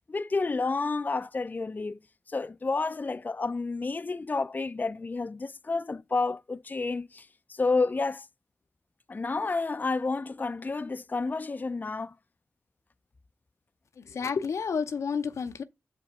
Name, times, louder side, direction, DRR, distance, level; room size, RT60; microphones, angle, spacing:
voice 1, 0.1-2.0 2.3-8.3 9.1-12.1, left 3 dB, 35° left, 0.4 m, -30 dB
voice 2, 14.0-15.6, left 6 dB, 85° left, 0.6 m, -30 dB
7.5 x 4.7 x 5.1 m
cardioid pair, 55°, 5 cm